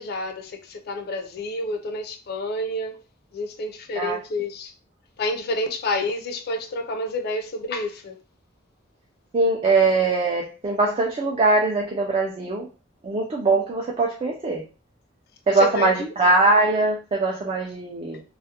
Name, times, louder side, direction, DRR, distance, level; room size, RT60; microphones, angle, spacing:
voice 1, 0.0-3.0 3.3-4.7 5.2-8.2 15.5-16.1, left 2 dB, 55° left, 0.5 m, -29 dB
voice 2, 9.3-12.7 13.0-14.6 15.5-18.2, right 3 dB, 30° right, 0.4 m, -21 dB
2.3 x 2.1 x 2.8 m
head